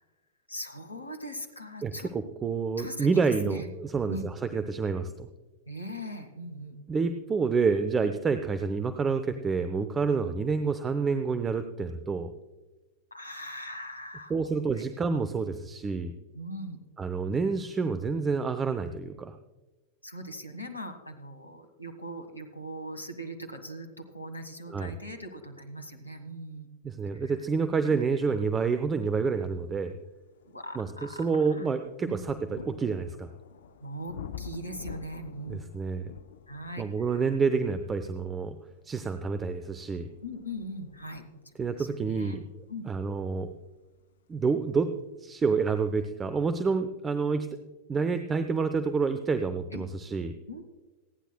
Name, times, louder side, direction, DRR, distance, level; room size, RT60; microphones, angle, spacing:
voice 1, 0.5-2.1 2.8-3.7 4.1-4.3 5.7-6.8 13.1-14.3 14.8-14.9 16.3-16.8 20.0-26.7 27.1-27.3 30.5-31.7 32.0-32.3 33.8-35.6 36.5-36.9 37.1-37.2 40.2-42.4 42.7-42.9 49.7-49.8 50.5-50.6, equal, 85° left, 8 dB, 1.4 m, -40 dB
voice 2, 1.8-5.3 6.9-12.3 14.3-16.1 17.0-19.4 24.7-24.9 26.8-30.0 30.8-33.3 35.5-36.1 36.8-38.6 38.8-40.1 41.6-43.5 44.3-44.9 45.2-47.6 47.9-50.3, right 5 dB, 20° right, 10 dB, 0.7 m, -28 dB
sound 1, 29.3-29.4 30.0-44.7 45.6-45.7, left 8 dB, 65° left, 0.6 m, -49 dB
27.5 x 10.0 x 2.2 m, 1.2 s
figure-of-eight pair, 90°, 0 cm